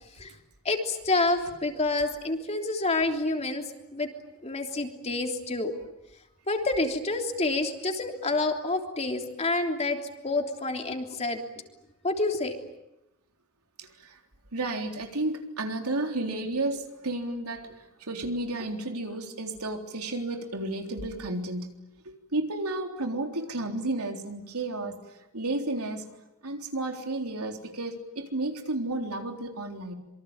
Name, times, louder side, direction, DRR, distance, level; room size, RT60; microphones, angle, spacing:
voice 1, 0.6-4.1 4.4-5.7 6.5-10.0 10.2-11.4 12.0-12.6, left 2 dB, 30° left, 3 dB, 3.3 m, -28 dB
voice 2, 13.8-14.2 14.5-21.7 22.0-25.0 25.3-26.0 26.4-29.9, right 2 dB, 90° right, 4 dB, 3.8 m, -32 dB
26.5 x 24.0 x 8.9 m, 0.91 s
head